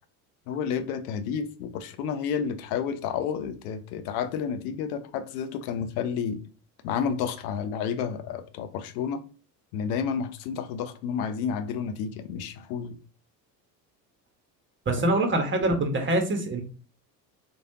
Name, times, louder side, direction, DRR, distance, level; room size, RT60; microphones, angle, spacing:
voice 1, 0.5-6.4 6.8-9.2 9.7-13.0 15.0-15.1, left 7 dB, 60° left, 0.7 m, -30 dB
voice 2, 14.9-16.6, right 1 dB, 25° right, 1.2 m, -24 dB
4.2 x 3.2 x 2.8 m
figure-of-eight pair, 65°, 50 cm